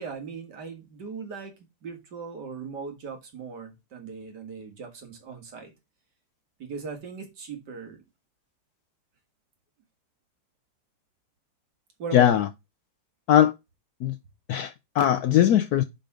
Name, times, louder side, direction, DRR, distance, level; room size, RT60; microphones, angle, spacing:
voice 1, 0.0-1.5 1.8-5.7 6.6-8.1 12.0-12.4, right 5 dB, 60° right, 2.2 m, -38 dB
voice 2, 12.1-12.5 13.3-13.5 14.0-14.2 14.5-15.8, left 11 dB, 75° left, 0.9 m, -20 dB
5.6 x 5.3 x 4.9 m
omnidirectional pair, 2.1 m